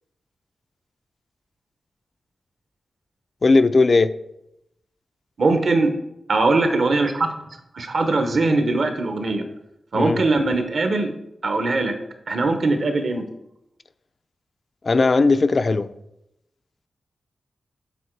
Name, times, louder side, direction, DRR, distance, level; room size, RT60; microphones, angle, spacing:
voice 1, 3.4-4.1 9.9-10.2 14.8-15.9, left 3 dB, 45° left, 11 dB, 0.3 m, -17 dB
voice 2, 5.4-5.9 6.3-7.3 7.7-9.4 9.9-11.1 11.4-11.9 12.3-13.2, right 3 dB, 65° right, 7 dB, 0.9 m, -21 dB
7.1 x 4.0 x 4.6 m, 0.85 s
wide cardioid pair, 85°, 0 cm